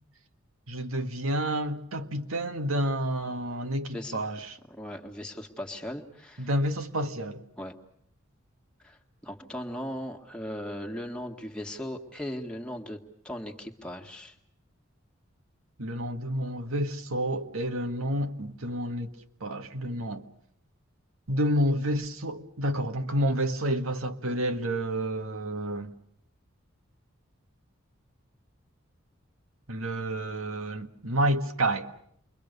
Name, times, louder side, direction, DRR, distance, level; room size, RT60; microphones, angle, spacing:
voice 1, 0.7-4.6 6.4-7.4 15.8-19.1 19.4-20.2 21.3-25.9 29.7-31.9, right 1 dB, 80° right, 1.8 m, -29 dB
voice 2, 4.7-6.5 7.6-7.7 8.8-14.4, equal, 5° left, 1.9 m, -38 dB
29.0 x 23.5 x 6.8 m
head